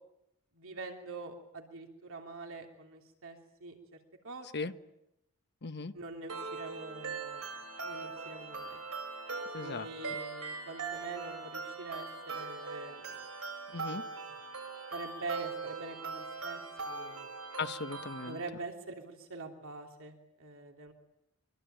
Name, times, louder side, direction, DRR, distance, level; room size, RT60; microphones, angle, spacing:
voice 1, 0.5-4.0 4.2-4.7 5.9-7.5 7.8-8.8 9.6-13.2 14.9-17.3 18.2-20.9, right 3 dB, 65° right, 3 dB, 3.1 m, -45 dB
voice 2, 5.6-5.9 9.5-9.9 13.7-14.0 17.6-18.4, left 4 dB, 50° left, 10 dB, 1.2 m, -37 dB
sound 1, 6.3-18.3, right 4 dB, 85° right, 7.4 m, -41 dB
25.0 x 24.5 x 9.1 m, 0.84 s
head